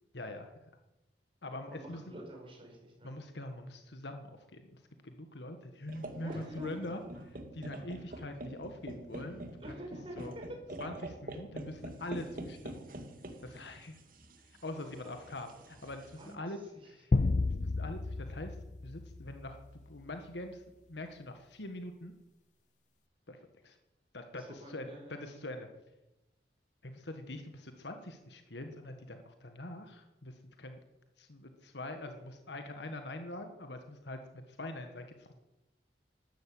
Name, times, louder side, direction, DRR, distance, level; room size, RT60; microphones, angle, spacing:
voice 1, 0.1-0.5 1.4-2.0 3.0-7.0 7.3-9.8 10.2-10.3 10.8-12.8 13.4-14.0 14.6-17.1 17.6-18.5 18.8-19.6 19.9-20.6 20.9-22.1 23.3-23.4 23.6-23.8 24.1-25.7 26.8-30.8 31.2-35.4, left 1 dB, 75° left, 6 dB, 1.6 m, -43 dB
voice 2, 1.7-3.1 6.2-6.9 9.6-10.6 14.8-15.2 15.5-15.7 16.2-16.4 16.7-16.9 24.3-25.5, equal, 30° right, 0 dB, 5.3 m, -47 dB
sound 1, 5.9-16.3, right 1 dB, 50° right, 2.1 m, -46 dB
sound 2, 17.1-19.7, left 3 dB, 40° left, 0.4 m, -32 dB
13.5 x 12.0 x 8.6 m, 0.97 s
head